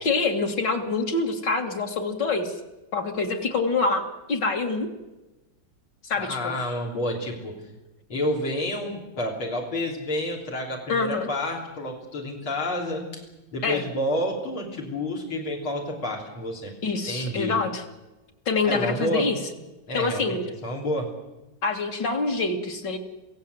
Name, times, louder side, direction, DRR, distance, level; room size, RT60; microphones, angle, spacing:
voice 1, 0.0-2.5 2.9-4.9 6.0-6.5 10.9-11.3 13.6-13.8 16.8-17.8 18.5-19.4 19.9-20.4 21.6-23.0, left 3 dB, 55° left, 3 dB, 3.0 m, -26 dB
voice 2, 6.2-7.5 8.1-13.2 13.5-16.7 17.1-17.6 18.6-19.3 19.9-20.4 20.6-21.1, left 1 dB, 80° left, -1 dB, 4.4 m, -29 dB
27.0 x 16.5 x 8.0 m, 1.1 s
omnidirectional pair, 2.2 m